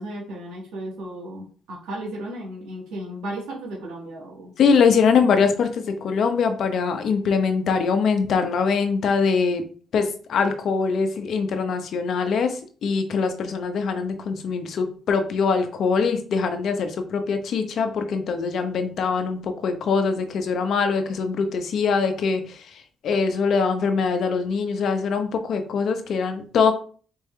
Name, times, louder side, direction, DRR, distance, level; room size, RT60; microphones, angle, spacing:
voice 1, 0.0-4.5, right 1 dB, 85° right, -5 dB, 1.8 m, -35 dB
voice 2, 4.6-9.7 9.9-26.7, left 5 dB, 65° left, 7 dB, 0.8 m, -23 dB
4.5 x 3.4 x 3.2 m, 0.42 s
cardioid pair, 90°, 0 cm